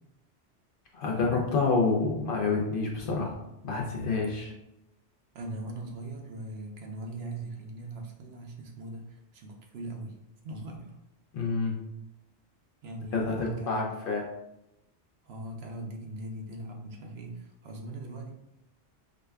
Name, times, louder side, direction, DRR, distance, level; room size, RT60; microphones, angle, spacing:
voice 1, 0.9-3.3 3.6-4.5 11.3-11.7 13.1-14.2, left 4 dB, 60° left, -1 dB, 0.6 m, -28 dB
voice 2, 5.3-10.2 10.4-11.0 12.8-13.9 15.2-18.3, right 2 dB, 65° right, 1 dB, 0.8 m, -40 dB
4.9 x 2.2 x 2.3 m, 0.87 s
omnidirectional pair, 1.2 m